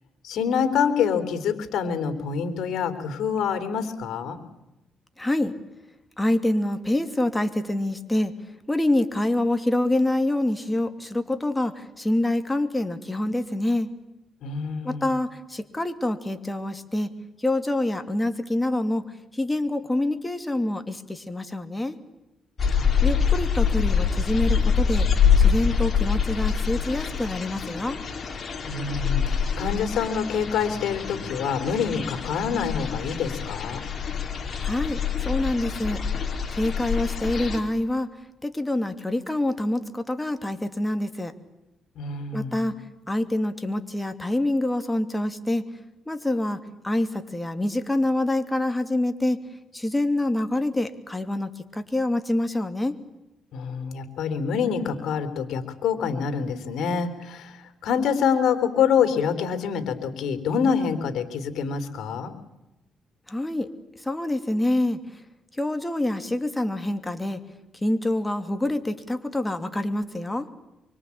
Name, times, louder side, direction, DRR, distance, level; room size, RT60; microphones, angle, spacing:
voice 1, 0.2-4.4 14.4-15.1 22.7-23.1 28.6-33.8 42.0-42.7 53.5-62.3, left 6 dB, 75° left, 10 dB, 3.6 m, -26 dB
voice 2, 5.2-5.5 6.2-8.3 8.7-13.9 14.8-17.1 17.4-21.9 23.0-25.1 25.4-28.0 34.6-36.0 36.5-38.1 38.4-41.3 42.3-42.8 43.1-45.7 46.1-46.6 46.8-49.4 49.7-52.9 63.3-63.7 64.0-65.0 65.6-67.4 67.8-70.5, left 1 dB, 10° left, 8 dB, 2.7 m, -26 dB
sound 1, 22.6-37.6, left 6 dB, 45° left, 4.4 m, -25 dB
25.5 x 24.5 x 8.5 m, 0.96 s
cardioid pair, 90°, 0 cm